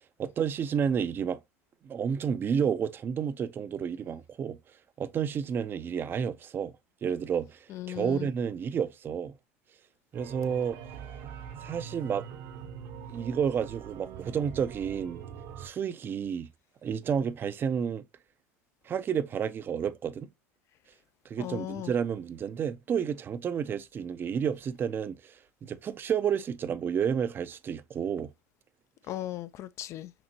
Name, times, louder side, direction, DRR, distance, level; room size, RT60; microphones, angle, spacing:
voice 1, 0.2-1.4 1.8-4.6 5.0-6.7 7.0-9.4 10.1-10.8 11.6-12.3 13.1-15.2 15.6-16.5 16.8-18.0 18.9-20.3 21.3-28.3, right 7 dB, 30° right, 0.4 m, -30 dB
voice 2, 7.7-8.3 21.4-21.9 29.1-30.1, left 13 dB, 40° left, 0.3 m, -37 dB
sound 1, 10.1-15.7, right 7 dB, 60° right, 0.8 m, -43 dB
5.9 x 2.1 x 2.8 m
hypercardioid pair, 85°, 7 cm